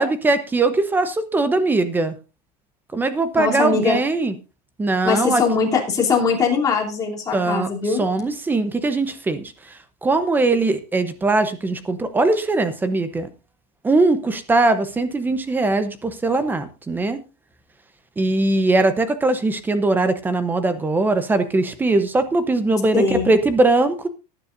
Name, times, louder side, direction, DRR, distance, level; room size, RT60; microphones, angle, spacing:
voice 1, 0.0-2.1 2.9-4.3 4.8-5.4 7.3-9.5 10.0-13.3 13.8-17.2 18.2-24.1, right 2 dB, 10° right, 11 dB, 0.8 m, -20 dB
voice 2, 3.4-4.0 5.0-8.0 22.9-23.3, left 5 dB, 15° left, -3 dB, 3.1 m, -21 dB
18.5 x 10.0 x 2.6 m, 0.29 s
supercardioid pair, 165°, 21 cm